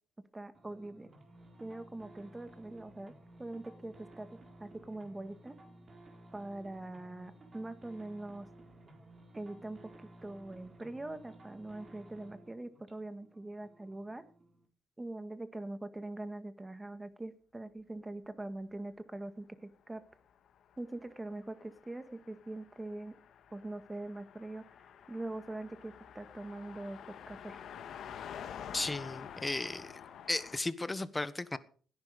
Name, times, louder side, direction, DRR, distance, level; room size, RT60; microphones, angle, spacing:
voice 1, 0.3-1.1 1.6-3.1 3.4-4.3 4.6-5.6 6.3-8.5 9.3-14.2 15.0-20.0 20.8-23.2 23.5-24.8 25.1-27.6, right 2 dB, 15° right, 1.8 m, -43 dB
sound 1, 0.5-14.7, right 1 dB, 35° right, 4.3 m, -56 dB
Car passing by, 20.5-30.6, left 8 dB, 70° left, 1.7 m, -49 dB
voice 2, 28.7-29.9 30.3-31.6, left 2 dB, 15° left, 1.2 m, -35 dB
17.0 x 10.5 x 5.2 m
cardioid pair, 90°, 0 cm